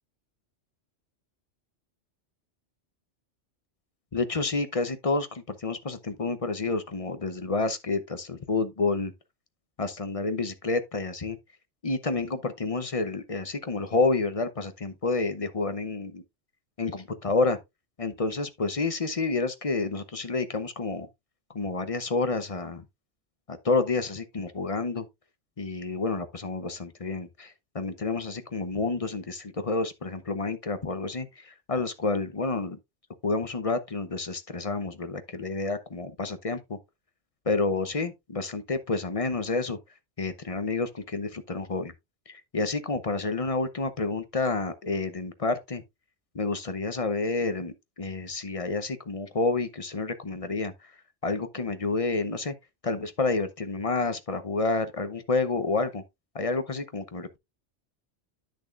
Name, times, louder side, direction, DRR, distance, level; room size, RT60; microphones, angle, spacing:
voice 1, 4.1-9.1 9.8-11.4 11.8-16.2 16.8-17.6 18.0-21.1 21.5-22.8 23.5-25.1 25.6-32.8 33.2-36.8 37.5-39.8 40.2-41.9 42.3-45.8 46.3-50.9 51.2-52.5 52.8-56.0 56.3-57.4, left 3 dB, 35° left, 0.8 m, -29 dB
10.5 x 6.4 x 2.5 m
omnidirectional pair, 1.2 m